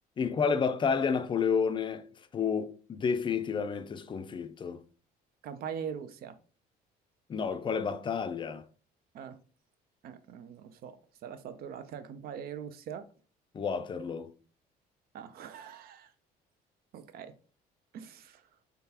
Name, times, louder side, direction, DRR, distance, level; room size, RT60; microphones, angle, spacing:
voice 1, 0.2-2.0 2.3-4.8 7.3-8.6 13.5-14.3, left 6 dB, 30° left, 0.4 m, -30 dB
voice 2, 5.4-6.3 9.1-9.4 10.0-13.1 15.1-16.1 16.9-17.3 17.9-18.4, right 7 dB, 65° right, 0.5 m, -42 dB
3.8 x 3.4 x 2.8 m
cardioid pair, 110°, 17 cm